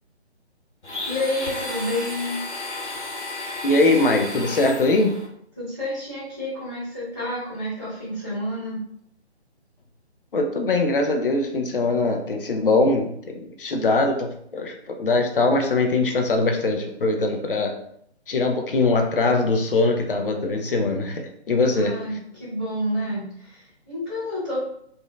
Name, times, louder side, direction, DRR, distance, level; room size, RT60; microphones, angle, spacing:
Domestic sounds home sounds, 0.8-5.3, left 2 dB, 85° left, 1.4 m, -33 dB
voice 1, 1.1-2.4 5.6-8.8 21.7-24.7, left 1 dB, 10° right, -18 dB, 0.5 m, -29 dB
voice 2, 3.6-5.1 10.3-17.7 18.3-21.9, left 2 dB, 50° left, 4 dB, 0.6 m, -22 dB
3.2 x 2.6 x 2.4 m, 0.70 s
figure-of-eight pair, 150°, 34 cm